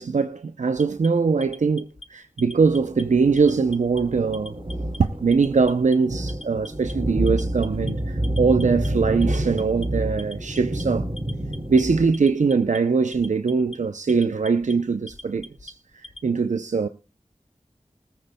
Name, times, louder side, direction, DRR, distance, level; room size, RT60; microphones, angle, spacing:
voice 1, 0.0-4.6 5.0-11.1 11.7-16.9, right 4 dB, 85° right, 0.6 m, -22 dB
Alarm, 0.7-2.0 2.4-3.0 3.4-4.0 4.3-5.0 5.3-6.0 6.3-6.9 7.3-7.9 8.2-8.9 9.2-9.9 10.2-10.8 11.2-11.8 12.1-12.8 13.1-13.8 14.1-14.7 15.1-16.3, left 2 dB, 55° left, 0.9 m, -42 dB
sound 1, 2.6-12.1, right 1 dB, 45° right, 2.5 m, -29 dB
20.0 x 14.0 x 2.2 m
wide cardioid pair, 50°, 12 cm